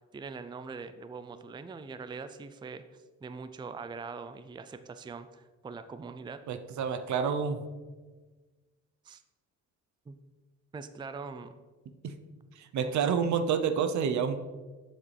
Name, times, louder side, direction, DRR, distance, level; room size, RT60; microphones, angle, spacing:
voice 1, 0.1-6.4 9.0-9.2 10.1-10.2 10.7-11.5 12.8-13.0, right 4 dB, 15° right, 11 dB, 0.4 m, -42 dB
voice 2, 6.5-7.6 12.0-12.1 12.6-14.4, right 7 dB, 70° right, 9 dB, 0.7 m, -28 dB
7.5 x 7.1 x 3.3 m, 1.3 s
cardioid pair, 90°, 30 cm